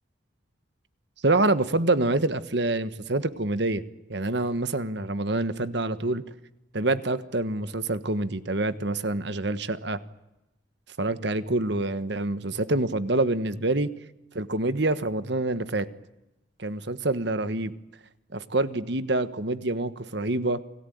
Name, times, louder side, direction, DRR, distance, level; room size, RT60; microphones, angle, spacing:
voice 1, 1.2-3.8 4.1-6.2 6.7-10.0 11.0-13.9 14.3-15.9 16.6-17.7 18.3-20.6, right 2 dB, 60° right, 13 dB, 1.3 m, -26 dB
29.0 x 18.5 x 9.3 m, 0.94 s
head